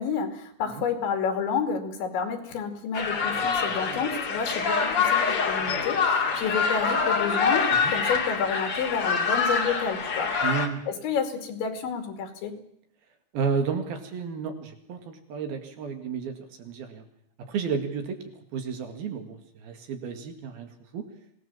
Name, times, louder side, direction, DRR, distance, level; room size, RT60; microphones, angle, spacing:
voice 1, 0.0-10.3 10.9-12.6, left 6 dB, 80° left, 6 dB, 4.7 m, -30 dB
sound 1, 2.9-10.7, left 5 dB, 40° left, 2.3 m, -25 dB
voice 2, 3.3-4.1 7.7-7.9 10.4-10.8 13.3-17.0 17.5-18.2 18.5-21.1, right 6 dB, 60° right, 6 dB, 3.8 m, -32 dB
26.0 x 18.5 x 7.3 m, 0.70 s
omnidirectional pair, 5.2 m